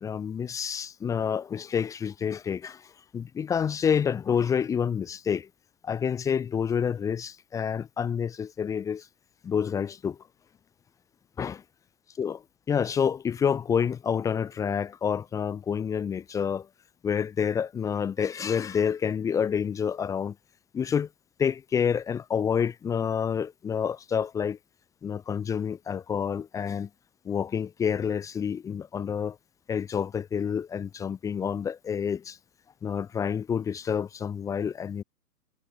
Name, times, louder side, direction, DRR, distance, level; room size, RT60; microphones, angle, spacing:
voice 1, 0.0-2.9 3.1-5.5 5.8-9.1 9.4-10.2 11.4-11.6 12.2-12.4 12.7-16.7 17.0-20.3 20.7-21.1 21.4-24.6 25.0-26.9 27.2-29.4 29.7-32.4 32.8-35.0, left 7 dB, 5° left, 0.9 m, -28 dB
figure-of-eight pair, 130°, 49 cm